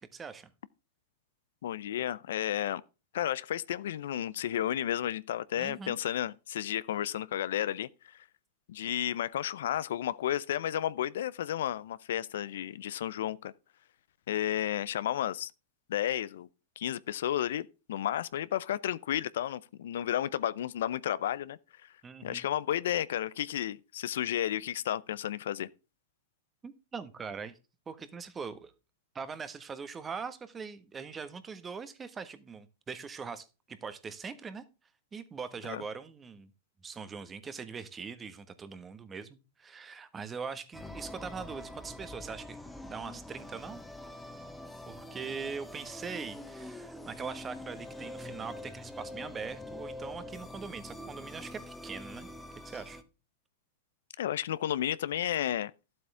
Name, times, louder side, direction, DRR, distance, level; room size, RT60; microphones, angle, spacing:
voice 1, 0.1-0.5 5.6-6.0 22.0-22.5 26.6-27.5 27.9-28.7 29.1-34.6 35.1-36.5 36.8-43.8 44.9-52.3 52.6-53.0, right 5 dB, 20° right, 1.4 m, -42 dB
voice 2, 1.6-2.8 3.1-7.9 8.7-13.5 14.3-15.5 15.9-16.5 16.8-21.6 22.2-25.7 35.7-35.8 54.2-55.7, left 11 dB, 75° left, 0.6 m, -32 dB
sound 1, 40.7-53.0, left 1 dB, 5° left, 1.5 m, -45 dB
12.0 x 7.9 x 3.4 m
hypercardioid pair, 110°, 0 cm